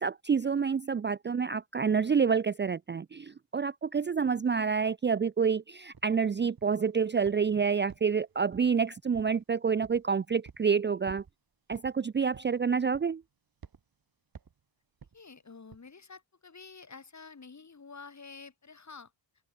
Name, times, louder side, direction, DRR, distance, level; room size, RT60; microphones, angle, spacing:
voice 1, 0.0-11.2 11.7-13.2, right 6 dB, 25° right, 0.6 m, -28 dB
sound 1, 5.9-6.1 6.6-6.9 7.2-7.5 7.9-8.8 9.1-9.4 9.8-10.1 10.4-10.7 11.1-11.3 11.7-11.9 12.3-12.6 12.9-13.2 13.6-13.8 14.3-14.6 15.0-15.2 15.7-15.9, right 6 dB, 50° right, 4.5 m, -51 dB
voice 2, 15.1-19.1, left 4 dB, 35° left, 3.8 m, -49 dB
supercardioid pair, 55°, 46 cm